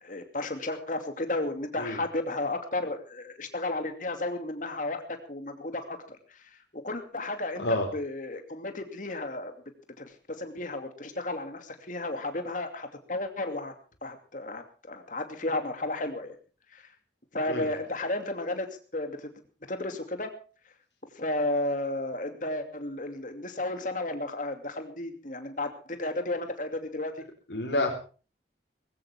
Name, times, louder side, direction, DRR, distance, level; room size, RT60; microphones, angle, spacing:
voice 1, 0.0-9.5 10.0-13.7 14.0-16.4 16.7-16.9 17.3-19.3 19.7-20.4 21.1-27.2, left 2 dB, 45° left, 7 dB, 2.6 m, -33 dB
voice 2, 27.5-27.9, left 2 dB, 80° left, 1 dB, 4.3 m, -28 dB
20.0 x 16.5 x 3.5 m, 0.37 s
head